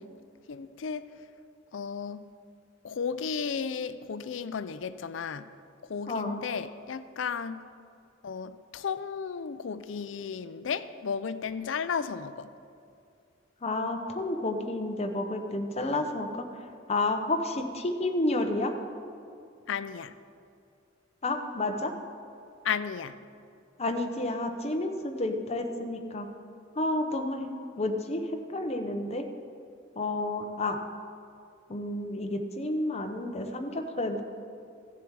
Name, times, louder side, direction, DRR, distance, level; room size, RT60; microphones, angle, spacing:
voice 1, 0.5-1.0 1.7-2.3 2.8-5.5 5.9-7.6 8.2-12.5 19.7-20.1 22.6-23.2, left 6 dB, 75° left, 0.5 m, -34 dB
voice 2, 6.1-6.4 13.6-16.3 16.9-18.7 21.2-21.9 23.8-26.3 26.8-27.5 27.8-28.2 28.5-29.2 30.0-30.8 31.7-34.2, left 2 dB, 35° left, 0.8 m, -30 dB
15.5 x 7.0 x 4.7 m
head